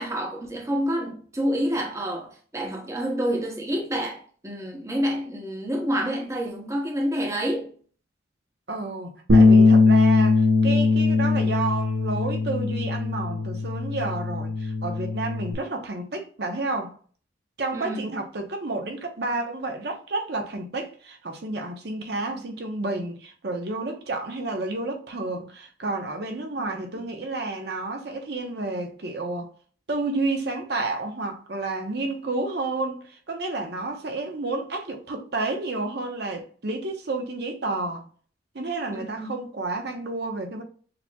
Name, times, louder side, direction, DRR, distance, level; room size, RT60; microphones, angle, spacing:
voice 1, 0.0-7.7 17.7-18.0 26.9-27.0 38.9-39.3, equal, 15° right, 0.8 m, -28 dB
voice 2, 8.7-16.9 17.6-29.5 29.9-38.0 38.5-40.6, right 2 dB, 60° right, 0.8 m, -30 dB
Bass guitar, 9.3-15.5, left 3 dB, 85° right, 1.0 m, -20 dB
6.6 x 2.9 x 2.3 m
head